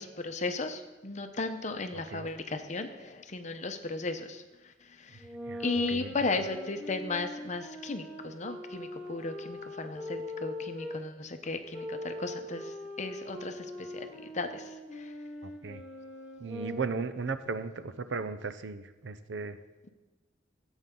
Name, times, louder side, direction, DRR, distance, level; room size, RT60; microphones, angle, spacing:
voice 1, 0.0-5.3 5.6-14.1 14.3-15.1, left 3 dB, 40° left, 8 dB, 0.8 m, -35 dB
sound 1, 5.2-11.0 11.7-17.2, left 1 dB, 5° right, 2.2 m, -42 dB
voice 2, 5.5-6.1 15.4-15.8 16.4-19.6, right 4 dB, 70° right, 12 dB, 0.6 m, -36 dB
15.0 x 8.1 x 3.8 m, 1.1 s
head